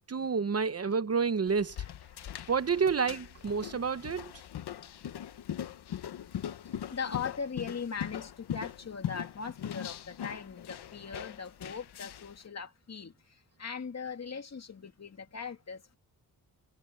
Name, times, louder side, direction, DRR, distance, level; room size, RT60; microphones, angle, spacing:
voice 1, 0.1-1.8 2.5-4.3, right 5 dB, 40° right, 1.0 m, -29 dB
sound 1, 1.5-12.4, left 10 dB, 90° left, 1.2 m, -41 dB
voice 2, 2.1-2.5 3.7-3.9 4.7-5.2 6.5-16.0, left 6 dB, 40° left, 2.4 m, -40 dB
wide cardioid pair, 105°, 38 cm